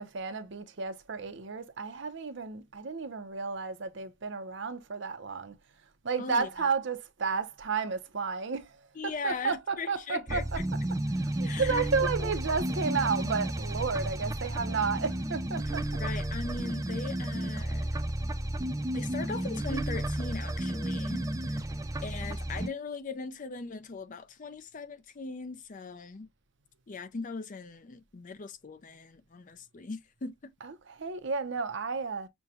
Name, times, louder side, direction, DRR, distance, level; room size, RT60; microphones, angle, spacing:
voice 1, 0.0-5.6 6.0-8.7 9.0-16.0 30.6-32.3, right 5 dB, 60° right, 0.7 m, -32 dB
voice 2, 6.2-6.7 9.0-10.6 11.4-11.9 12.2-12.3 16.0-17.9 18.9-21.7 22.0-26.3 26.9-30.5, left 4 dB, 40° left, 0.5 m, -39 dB
sound 1, 10.3-22.7, right 1 dB, 15° right, 0.4 m, -32 dB
6.3 x 2.2 x 2.8 m
head